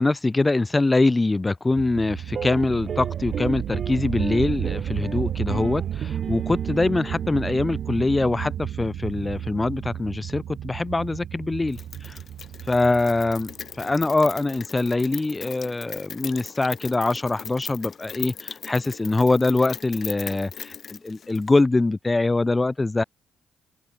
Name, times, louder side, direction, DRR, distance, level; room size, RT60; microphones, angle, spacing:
voice 1, 0.0-12.2 12.7-13.5 13.8-23.0, left 2 dB, 20° left, 0.4 m, -23 dB
sound 1, 1.8-14.2, right 10 dB, 70° right, 2.0 m, -32 dB
sound 2, 2.3-8.9, right 7 dB, 50° right, 3.4 m, -35 dB
Rain, 11.7-21.6, left 7 dB, 50° left, 1.7 m, -39 dB
cardioid pair, 90°, 0 cm